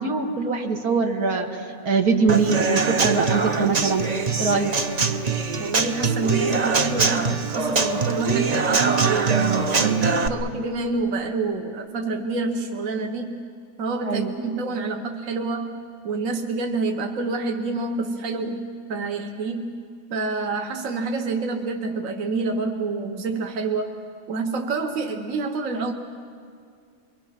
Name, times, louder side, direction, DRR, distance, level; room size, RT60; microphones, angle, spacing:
voice 1, 0.0-4.1 4.4-4.7 14.1-14.3, right 4 dB, 85° right, 2 dB, 2.2 m, -23 dB
Human voice / Acoustic guitar / Drum, 2.3-10.3, right 4 dB, 35° right, 0.7 m, -23 dB
voice 2, 5.6-13.4 13.8-18.6 18.9-19.8 20.1-23.9 24.3-25.9, right 3 dB, 65° right, 4 dB, 1.4 m, -27 dB
27.5 x 23.0 x 5.8 m, 2.2 s
omnidirectional pair, 1.5 m